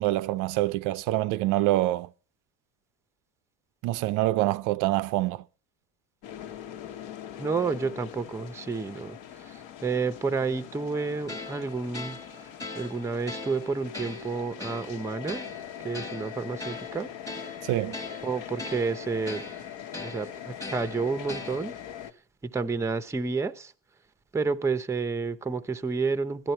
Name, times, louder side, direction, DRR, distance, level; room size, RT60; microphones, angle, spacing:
voice 1, 0.0-2.1 3.8-5.4 17.6-18.0, right 16 dB, 60° right, 0.6 m, -26 dB
sound 1, 6.2-22.1, left 10 dB, 60° left, 1.3 m, -42 dB
voice 2, 7.4-12.2 12.7-15.4 15.8-17.1 18.2-19.4 19.9-21.7 22.4-23.7 24.3-26.5, right 4 dB, 10° right, 0.7 m, -30 dB
sound 2, 11.3-21.9, left 2 dB, 10° left, 1.2 m, -41 dB
16.5 x 13.0 x 4.4 m
cardioid pair, 150°, 35 cm